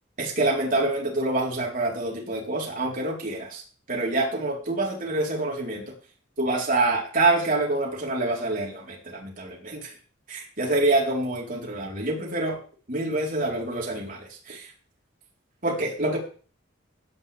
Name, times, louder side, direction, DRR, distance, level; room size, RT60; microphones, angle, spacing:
voice 1, 0.2-3.6 3.9-5.9 6.4-9.9 10.3-12.6 12.9-14.7 15.6-16.2, right 2 dB, 45° right, -2 dB, 4.1 m, -26 dB
16.5 x 9.7 x 3.5 m, 0.39 s
head